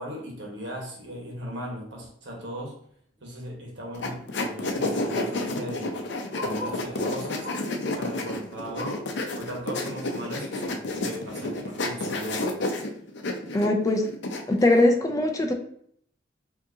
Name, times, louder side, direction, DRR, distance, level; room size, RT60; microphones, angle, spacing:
voice 1, 0.0-2.8 3.2-6.0 6.4-7.5 7.9-9.0 9.3-12.7, equal, 75° right, -1 dB, 1.3 m, -37 dB
Bark, 3.2-3.4 3.8-3.9 4.1-6.9 7.4-7.8 8.2-9.2 9.6-9.7 10.1-10.2 10.9-11.0, left 1 dB, 45° left, 1.4 m, -40 dB
sound 1, 4.0-14.8, left 2 dB, 65° left, 0.6 m, -30 dB
voice 2, 13.5-14.1 14.5-15.5, left 2 dB, 20° left, 4 dB, 0.4 m, -21 dB
4.8 x 2.8 x 2.7 m, 0.64 s
head